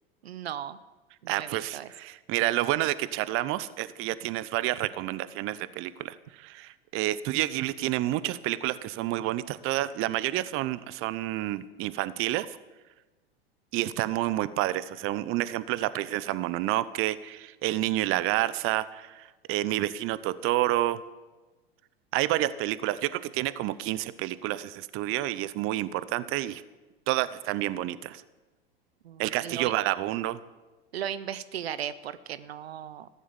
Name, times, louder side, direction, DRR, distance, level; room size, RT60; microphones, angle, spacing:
voice 1, 0.2-0.8 1.2-1.9 29.0-29.7 30.9-33.1, right 10 dB, 85° right, 15 dB, 0.8 m, -36 dB
voice 2, 1.3-12.6 13.7-21.0 22.1-26.6 27.1-28.2 29.2-30.4, right 15 dB, 45° right, 17 dB, 0.8 m, -29 dB
14.0 x 11.0 x 7.3 m, 1.2 s
hypercardioid pair, 100°, 31 cm